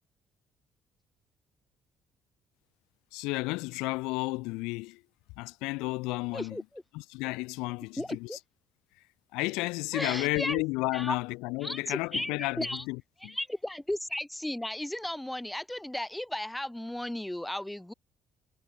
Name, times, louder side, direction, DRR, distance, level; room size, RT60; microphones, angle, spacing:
voice 1, 3.1-5.0 5.4-6.6 6.9-8.4 9.3-13.4, left 24 dB, 70° left, 1.0 m, -32 dB
voice 2, 8.0-8.4 9.9-10.6 10.9-11.1 11.6-12.8 13.2-17.9, left 1 dB, 5° left, 4.6 m, -35 dB
hypercardioid pair, 50°, 0 cm